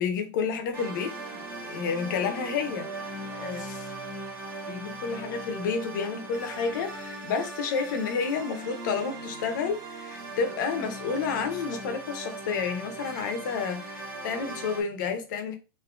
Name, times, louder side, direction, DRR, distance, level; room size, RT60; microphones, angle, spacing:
voice 1, 0.0-1.4 1.7-2.9 3.3-3.9 4.6-15.6, left 5 dB, 60° left, 0.7 m, -30 dB
sound 1, 0.7-14.8, right 2 dB, 15° right, 1.1 m, -39 dB
3.7 x 2.7 x 2.4 m
supercardioid pair, 175°, 12 cm